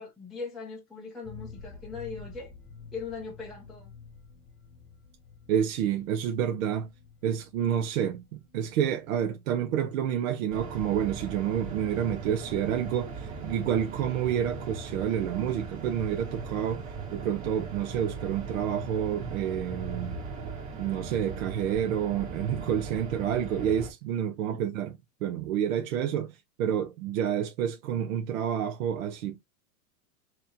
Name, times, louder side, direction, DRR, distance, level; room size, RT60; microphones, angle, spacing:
voice 1, 0.0-2.5 2.9-3.9 24.5-24.6, left 4 dB, ahead, 0.5 m, -40 dB
sound 1, 1.2-10.8 11.1-11.2 11.5-11.6, left 5 dB, 40° left, 0.9 m, -50 dB
voice 2, 5.5-6.9 7.2-20.2 20.8-29.4, right 9 dB, 65° right, 0.7 m, -29 dB
sound 2, 10.5-23.9, right 4 dB, 45° right, 1.3 m, -38 dB
4.0 x 2.9 x 2.7 m
supercardioid pair, 145°, 43 cm